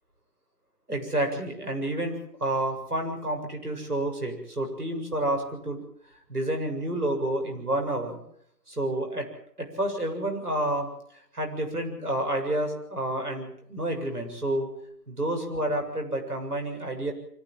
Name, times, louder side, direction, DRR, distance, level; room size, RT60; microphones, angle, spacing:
voice 1, 0.9-5.8 6.3-8.2 8.7-9.3 9.6-10.9 11.3-14.7 15.1-17.1, right 1 dB, 65° right, 3 dB, 7.7 m, -29 dB
24.5 x 15.5 x 9.1 m, 0.70 s
figure-of-eight pair, 170°, 48 cm